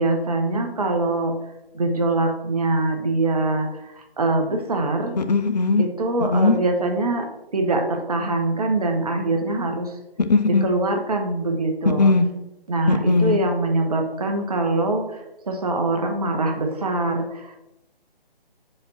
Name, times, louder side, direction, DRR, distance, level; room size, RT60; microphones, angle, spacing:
voice 1, 0.0-1.3 1.7-5.2 5.8-7.3 7.5-10.0 10.4-12.1 12.7-17.6, right 2 dB, 40° right, 4 dB, 0.9 m, -23 dB
voice 2, 5.2-5.8 6.2-6.6 10.2-10.6 12.0-12.2 12.9-13.4, left 3 dB, 45° left, 8 dB, 0.6 m, -18 dB
5.9 x 5.0 x 4.1 m, 0.91 s
figure-of-eight pair, 150°, 30 cm